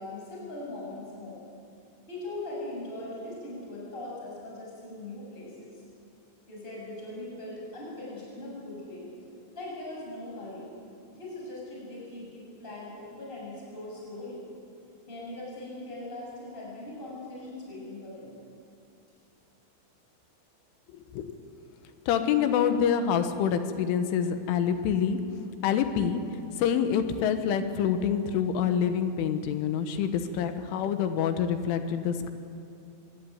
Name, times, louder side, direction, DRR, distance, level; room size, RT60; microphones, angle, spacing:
voice 1, 0.0-1.4 2.1-5.8 6.5-9.1 9.5-10.7 11.1-14.5 15.1-18.3, left 2 dB, 10° left, -4 dB, 7.0 m, -40 dB
voice 2, 20.9-21.3 22.1-25.2 25.6-32.3, left 8 dB, 75° left, 9 dB, 3.6 m, -27 dB
25.0 x 20.5 x 9.3 m, 2.6 s
omnidirectional pair, 5.8 m